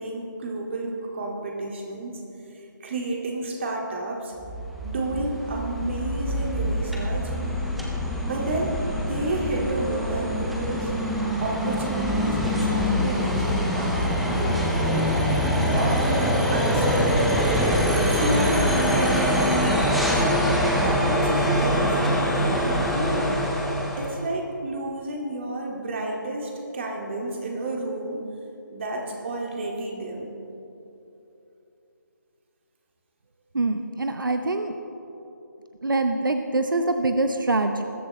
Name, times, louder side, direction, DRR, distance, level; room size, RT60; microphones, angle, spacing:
voice 1, 0.0-2.2 2.8-4.3 4.8-7.3 8.2-8.7 9.0-10.9 11.4-15.1 15.7-16.2 16.5-17.4 18.1-18.5 18.8-19.7 20.1-23.3 24.0-28.2 28.7-30.3, right 2 dB, 35° right, 0 dB, 2.1 m, -31 dB
sound 1, 4.4-24.2, equal, ahead, 0.4 m, -24 dB
voice 2, 33.5-34.7 35.8-37.8, right 2 dB, 85° right, 7 dB, 0.8 m, -24 dB
20.5 x 11.0 x 3.2 m, 2.9 s
figure-of-eight pair, 160°, 11 cm